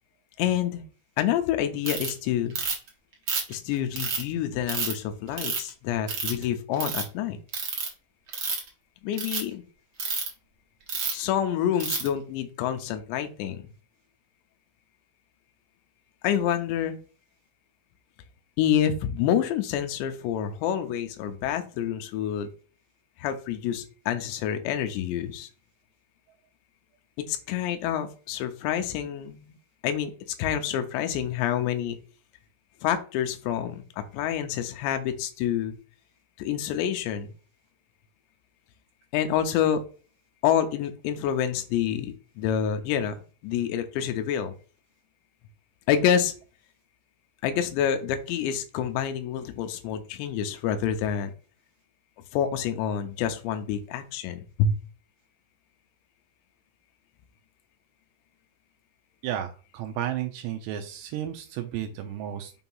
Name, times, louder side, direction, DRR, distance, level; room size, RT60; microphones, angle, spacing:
voice 1, 0.4-0.8 1.2-2.6 3.5-7.4 9.0-9.6 11.1-13.6 16.2-17.0 18.6-22.5 23.2-25.5 27.3-29.5 29.8-30.1 30.4-32.0 32.8-35.7 36.4-37.3 39.1-39.8 40.4-43.1 43.4-44.5 45.9-46.3 47.4-51.3 52.3-54.8, left 9 dB, 85° left, 7 dB, 3.1 m, -27 dB
Ratchet pawl, 1.8-2.1 2.5-2.9 3.3-4.2 4.7-4.9 5.4-5.7 6.1-6.4 6.7-7.0 7.5-7.9 8.3-8.7 9.1-9.4 10.0-10.3 10.9-11.2 11.8-12.1, right 5 dB, 60° right, 1.3 m, -29 dB
voice 2, 59.2-62.5, right 11 dB, 80° right, 6 dB, 2.8 m, -33 dB
7.1 x 2.9 x 5.4 m, 0.37 s
omnidirectional pair, 5.0 m